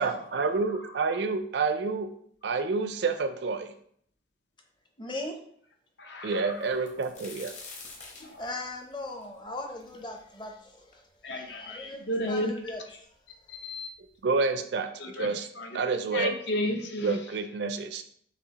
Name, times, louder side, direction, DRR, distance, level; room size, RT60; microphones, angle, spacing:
voice 1, 0.0-2.1 2.4-3.7 6.2-7.5 14.2-15.5 15.7-16.3 17.0-18.0, right 4 dB, 65° right, 8 dB, 0.4 m, -29 dB
voice 2, 5.0-5.4 8.4-11.0 11.6-13.0, left 1 dB, 25° left, 3 dB, 0.6 m, -38 dB
voice 3, 6.0-6.5 8.2-8.4 11.2-12.6 13.5-13.9 15.0-15.3 15.6-15.8 16.1-17.1, left 1 dB, 65° left, 3 dB, 0.7 m, -32 dB
sound 1, 6.6-10.4 10.9-11.0 11.8-11.9 12.1-12.8 13.7-13.8 14.2-14.4, left 3 dB, 40° left, 1.0 m, -46 dB
6.6 x 2.7 x 2.8 m, 0.63 s
head